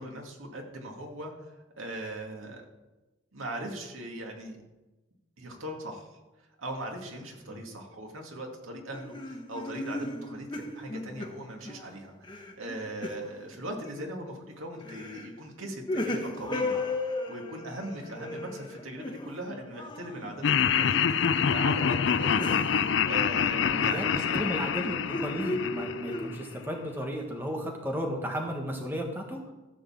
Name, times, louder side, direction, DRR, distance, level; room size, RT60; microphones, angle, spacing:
voice 1, 0.0-2.6 3.3-4.6 5.4-6.2 6.6-16.8 17.3-22.6 23.0-24.5, right 1 dB, 90° right, 2 dB, 2.2 m, -39 dB
Mix Pain Men Hospita Mix, 8.9-11.9 12.2-13.4 13.8-14.2 14.8-15.3 15.6-20.7 21.1-21.5 21.9-24.1 24.8-26.3, left 2 dB, 25° left, 1.1 m, -36 dB
Laughter, 20.4-26.6, left 7 dB, 65° left, 0.4 m, -26 dB
voice 2, 23.7-29.4, equal, 10° right, 2 dB, 1.6 m, -34 dB
14.0 x 5.4 x 7.4 m, 1.1 s
head